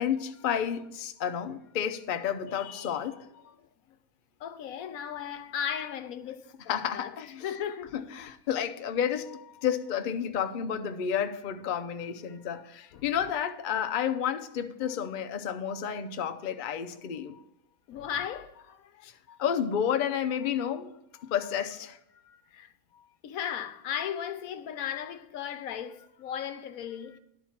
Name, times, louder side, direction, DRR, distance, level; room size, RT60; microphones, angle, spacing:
voice 1, 0.0-3.3 6.7-7.5 7.9-17.4 19.0-19.1 19.4-22.0 22.3-22.4, left 8 dB, 55° left, 0.5 m, -31 dB
voice 2, 4.4-7.1 7.4-8.0 12.3-12.4 12.9-13.0 17.9-19.4 22.5-22.7 23.2-27.2, left 9 dB, 70° left, 1.1 m, -36 dB
11.0 x 4.4 x 7.2 m
omnidirectional pair, 1.6 m